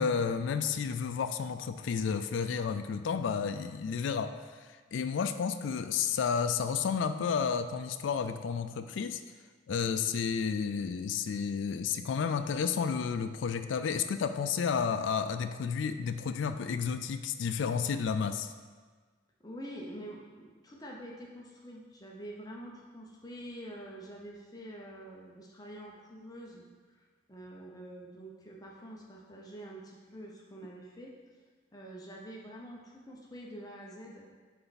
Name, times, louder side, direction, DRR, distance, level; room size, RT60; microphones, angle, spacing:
voice 1, 0.0-9.2 9.7-18.5, left 6 dB, 75° left, 9 dB, 0.4 m, -31 dB
voice 2, 19.4-31.2 31.7-34.3, right 1 dB, 20° left, -2 dB, 0.7 m, -46 dB
9.3 x 3.4 x 4.1 m, 1.5 s
head